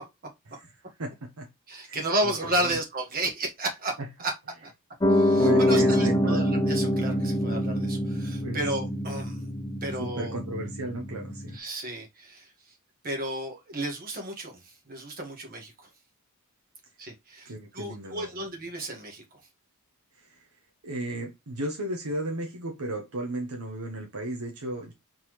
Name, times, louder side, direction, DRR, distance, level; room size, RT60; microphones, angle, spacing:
voice 1, 1.0-1.5 1.9-2.0 2.5-2.8 5.2-6.4 8.4-8.6 10.0-11.6 17.4-18.5 20.2-20.5 20.8-24.9, right 1 dB, 85° right, 1.0 m, -34 dB
voice 2, 1.7-4.3 4.6-4.7 5.1-9.5 9.8-10.3 11.5-12.7 13.0-15.9 17.0-19.4, right 1 dB, 40° right, 1.8 m, -33 dB
Piano, 5.0-11.6, left 1 dB, 15° left, 0.6 m, -25 dB
4.4 x 3.8 x 3.1 m
head